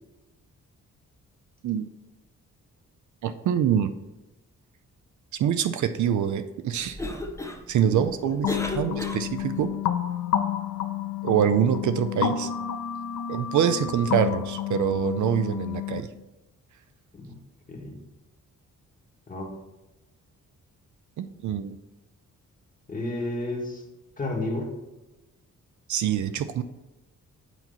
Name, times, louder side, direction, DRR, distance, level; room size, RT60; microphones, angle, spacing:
voice 1, 3.2-3.9 5.4-7.0 7.7-8.5 8.7-9.7 11.2-12.5 13.3-16.1 21.2-21.7 25.9-26.6, right 9 dB, 70° right, 10 dB, 0.5 m, -25 dB
Cough, 6.8-9.7, left 2 dB, 10° left, 0.6 m, -35 dB
voice 2, 7.8-8.3 17.1-17.3 17.7-18.0 19.3-19.5 22.9-23.8 24.2-24.7, left 2 dB, 25° left, 0 dB, 1.5 m, -32 dB
sound 1, 8.4-16.0, left 10 dB, 70° left, 0.6 m, -30 dB
8.2 x 2.9 x 5.5 m, 1.0 s
cardioid pair, 115°, 31 cm